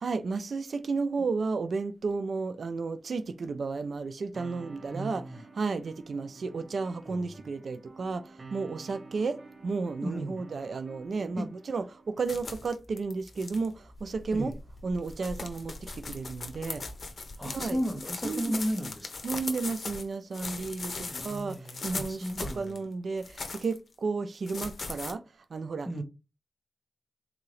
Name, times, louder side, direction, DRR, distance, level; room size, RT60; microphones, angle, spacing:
voice 1, 0.0-5.2 5.5-14.5 14.8-16.8 17.4-17.8 18.2-18.6 19.2-25.2 25.5-25.9, right 4 dB, 90° right, 0.3 m, -33 dB
sound 1, 4.3-12.4, right 3 dB, 50° right, 0.7 m, -50 dB
voice 2, 4.9-5.4 7.0-7.4 10.0-10.4 11.3-11.4 14.3-14.5 17.4-19.2 21.1-22.8 25.8-26.0, equal, ahead, 1.1 m, -35 dB
sound 2, 12.3-13.7 14.5-14.6 15.0-20.0 20.3-22.8 23.2-23.8 24.5-25.1, left 4 dB, 75° left, 0.7 m, -39 dB
sound 3, 12.3-18.0, left 1 dB, 50° left, 0.9 m, -48 dB
3.8 x 2.7 x 3.1 m
wide cardioid pair, 80°, 0 cm